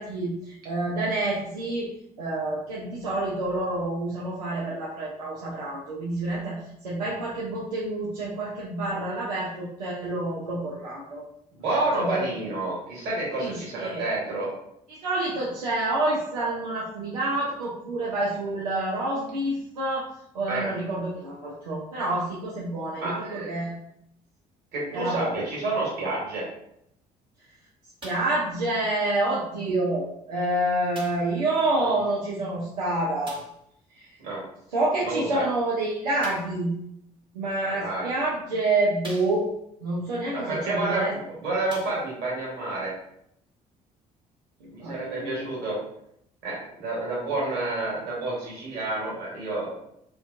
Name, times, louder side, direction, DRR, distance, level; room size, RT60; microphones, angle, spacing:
voice 1, 0.0-1.9 2.2-6.6 6.8-11.2 12.0-12.2 13.4-14.0 15.0-23.8 24.9-25.3 28.0-33.4 34.0-34.1 34.7-36.7 37.3-39.5 39.8-41.1 44.6-45.5, right 2 dB, 85° right, -6 dB, 0.5 m, -28 dB
voice 2, 11.6-14.5 20.5-20.7 22.9-23.5 24.7-26.4 31.8-31.9 34.2-34.4 35.0-35.4 37.6-38.1 40.3-42.9 44.7-45.8 46.4-49.7, right 2 dB, 60° right, -5 dB, 1.2 m, -29 dB
sound 1, 28.0-28.4 29.3-29.4 30.9-31.4 33.2-33.6 36.2-36.6 37.6-37.7 38.3-38.4 39.0-39.7 41.0-41.1 41.6-42.3 43.2-43.3, right 1 dB, 25° right, 1.1 m, -44 dB
2.5 x 2.2 x 2.4 m, 0.75 s
figure-of-eight pair, 50°, 20 cm